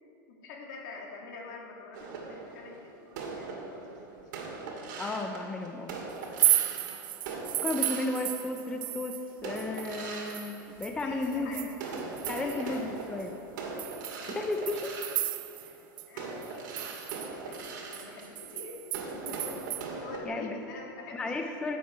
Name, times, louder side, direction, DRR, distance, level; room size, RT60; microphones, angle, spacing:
voice 1, 0.3-2.9 3.3-4.4 6.6-6.9 7.7-7.9 11.0-11.7 12.4-12.8 13.8-13.9 14.2-14.4 15.6-15.8 16.1-16.3 16.9-18.8 19.1-21.6, left 3 dB, 65° left, -1 dB, 2.6 m, -46 dB
sound 1, 1.9-8.9 9.4-11.4 11.7-20.2, right 3 dB, 65° right, 2.3 m, -41 dB
voice 2, 5.0-6.0 7.6-11.7 12.3-13.4 14.3-14.9 20.3-20.6 21.1-21.8, left 2 dB, 10° left, 4 dB, 0.5 m, -34 dB
sound 2, 6.2-9.3 9.6-12.8 13.2-13.3 13.8-15.7 16.0-16.1 16.4-19.8, right 13 dB, 80° right, 0.6 m, -33 dB
15.5 x 7.4 x 4.7 m, 2.8 s
supercardioid pair, 155°, 11 cm